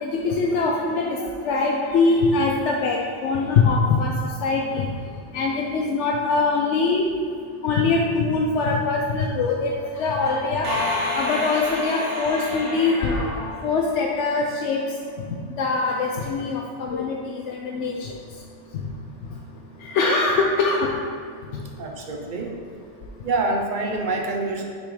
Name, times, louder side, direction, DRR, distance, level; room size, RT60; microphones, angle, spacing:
voice 1, 0.0-4.1 4.4-4.9 5.3-7.2 7.6-10.7 11.1-14.8 15.2-18.1 19.8-20.9, left 4 dB, 75° left, -1 dB, 0.9 m, -23 dB
sound 1, 10.6-14.3, left 1 dB, 70° right, 1.3 m, -29 dB
voice 2, 21.8-22.5 23.2-24.6, right 2 dB, 45° right, 1 dB, 0.8 m, -26 dB
6.3 x 3.8 x 4.9 m, 2.1 s
omnidirectional pair, 1.2 m